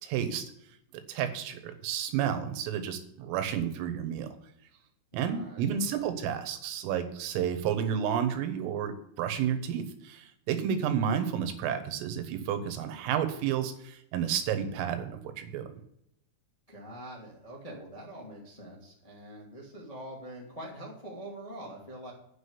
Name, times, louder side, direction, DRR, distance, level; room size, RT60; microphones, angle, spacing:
voice 1, 0.0-0.5 1.1-4.3 5.1-15.7, right 8 dB, 80° right, 8 dB, 3.8 m, -31 dB
voice 2, 5.1-6.1 16.7-22.1, right 1 dB, 25° left, -3 dB, 0.7 m, -44 dB
9.7 x 6.1 x 8.4 m, 0.75 s
omnidirectional pair, 5.9 m